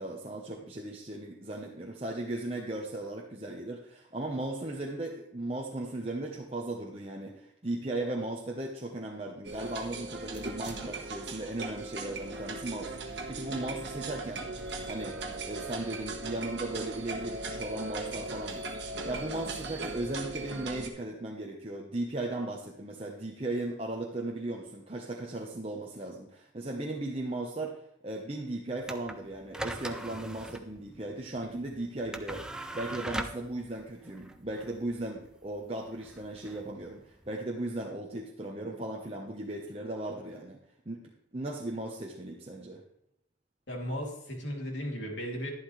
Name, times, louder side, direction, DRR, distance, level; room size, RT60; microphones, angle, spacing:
voice 1, 0.0-14.5 14.9-15.2 15.4-27.8 28.0-32.4 32.7-40.6 40.9-42.8, right 2 dB, 30° right, -1 dB, 1.0 m, -37 dB
sound 1, 9.4-20.9, right 2 dB, 65° right, 1.5 m, -38 dB
sound 2, 28.8-37.3, right 1 dB, 5° right, 0.5 m, -41 dB
voice 2, 43.7-45.5, equal, 75° left, -1 dB, 2.8 m, -36 dB
11.5 x 11.0 x 3.2 m, 0.77 s
head